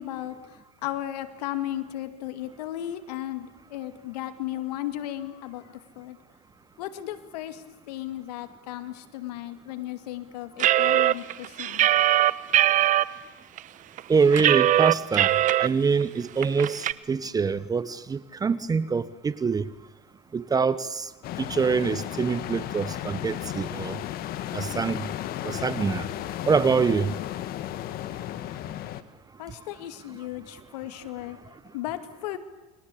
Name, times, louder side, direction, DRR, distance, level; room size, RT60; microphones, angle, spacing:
voice 1, 0.0-6.2 6.8-12.3 29.4-32.4, left 13 dB, 85° left, 2.3 m, -35 dB
sound 1, 10.6-13.0 13.6-13.7 14.0-15.7 16.0-16.1 16.4-16.9, right 13 dB, 40° right, 0.9 m, -21 dB
voice 2, 14.1-15.3 15.6-19.6 20.3-21.1 21.4-24.0 24.5-25.1 25.4-26.1 26.5-27.1, right 5 dB, 20° right, 1.0 m, -25 dB
sound 2, 21.2-29.0, left 12 dB, 50° left, 1.7 m, -34 dB
29.5 x 22.0 x 8.5 m
supercardioid pair, 125°, 20 cm